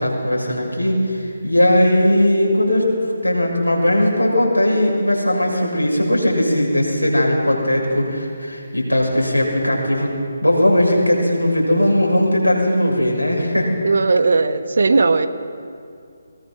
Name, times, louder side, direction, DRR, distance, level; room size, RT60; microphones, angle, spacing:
voice 1, 0.0-10.1 10.4-13.7, left 1 dB, 90° left, -1 dB, 6.3 m, -18 dB
voice 2, 13.8-15.3, right 3 dB, 55° right, 10 dB, 1.3 m, -16 dB
21.5 x 21.5 x 6.1 m, 2.3 s
figure-of-eight pair, 145°, 0 cm